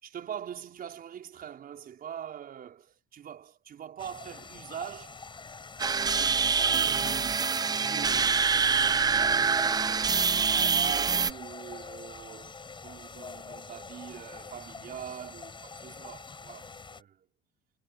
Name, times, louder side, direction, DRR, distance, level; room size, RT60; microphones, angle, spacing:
voice 1, 0.0-5.2 6.1-9.5 9.8-12.5 12.8-17.3, right 9 dB, 45° right, 5.4 m, -43 dB
sound 1, 4.0-17.0, left 4 dB, 25° left, 6.5 m, -45 dB
sound 2, 5.8-11.3, right 5 dB, 20° right, 0.5 m, -25 dB
supercardioid pair, 95°, 20 cm